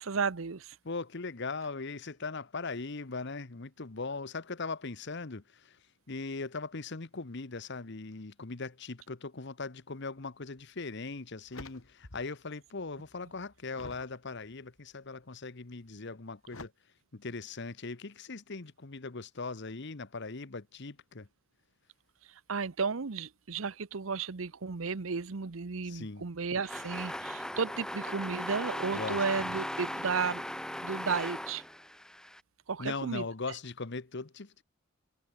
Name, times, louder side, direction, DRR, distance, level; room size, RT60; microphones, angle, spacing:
voice 1, 0.0-0.8 22.5-30.4 30.8-31.6 32.7-33.2, right 5 dB, 75° right, 0.8 m, -33 dB
voice 2, 0.8-16.7 17.1-21.3 25.8-26.3 28.9-29.2 32.8-34.6, left 3 dB, 60° left, 1.1 m, -39 dB
sound 1, 10.6-10.7 11.1-12.4 12.8-14.2 14.8-15.2 16.5-16.7, left 2 dB, 85° left, 3.4 m, -49 dB
sound 2, 26.6-32.4, left 1 dB, 5° left, 1.0 m, -38 dB
head